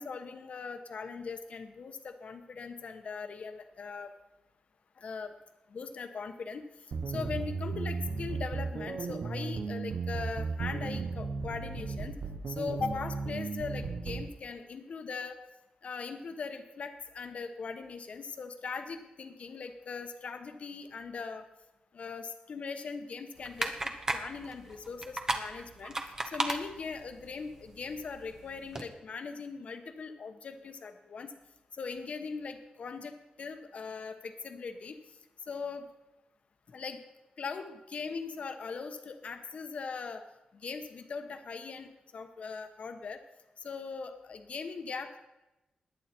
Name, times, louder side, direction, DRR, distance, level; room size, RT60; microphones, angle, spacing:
voice 1, 0.0-4.1 5.0-5.3 5.7-6.6 7.1-12.2 12.5-15.4 15.8-21.4 21.9-26.0 26.3-31.3 31.8-35.0 35.5-35.9 36.7-37.0 37.4-40.2 40.6-43.2 43.6-45.3, left 5 dB, 50° left, 7 dB, 1.2 m, -40 dB
sound 1, 6.9-14.3, right 4 dB, 60° right, 1.0 m, -35 dB
sound 2, 23.4-28.8, right 2 dB, 25° right, 1.1 m, -37 dB
20.5 x 9.3 x 4.5 m, 0.98 s
wide cardioid pair, 170°, 3 cm